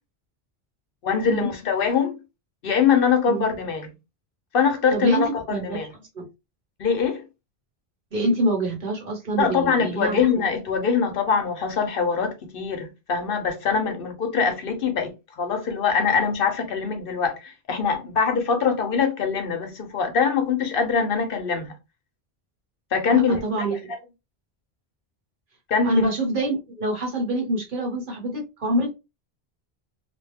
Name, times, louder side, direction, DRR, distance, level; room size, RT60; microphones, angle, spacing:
voice 1, 1.0-2.2 2.6-3.9 4.5-5.9 6.8-7.2 9.4-21.7 22.9-24.0 25.7-26.1, left 6 dB, 60° left, 0.8 m, -23 dB
voice 2, 4.9-5.8 6.1-6.2 8.1-10.2 23.1-23.9 25.8-28.9, right 1 dB, 55° right, 1.1 m, -26 dB
2.6 x 2.2 x 3.3 m
omnidirectional pair, 1.1 m